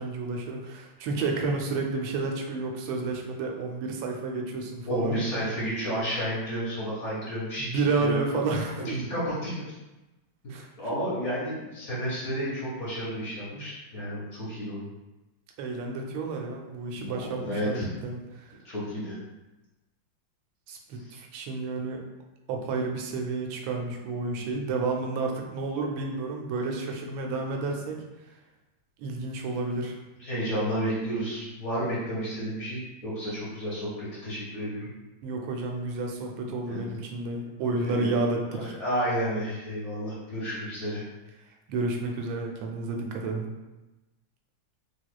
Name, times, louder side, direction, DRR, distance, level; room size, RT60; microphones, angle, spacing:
voice 1, 0.0-5.2 7.6-9.0 10.5-10.7 15.6-18.6 20.7-22.0 22.5-28.0 29.0-30.0 35.2-38.7 41.7-43.5, right 3 dB, 80° right, 1 dB, 1.3 m, -31 dB
voice 2, 4.9-7.7 8.0-8.2 8.8-9.5 10.8-14.9 17.0-17.9 18.6-19.2 24.4-24.7 30.2-34.9 36.7-37.0 37.8-38.1 38.5-41.1, equal, 55° left, -7 dB, 0.8 m, -31 dB
3.5 x 3.0 x 2.2 m, 1.1 s
omnidirectional pair, 2.2 m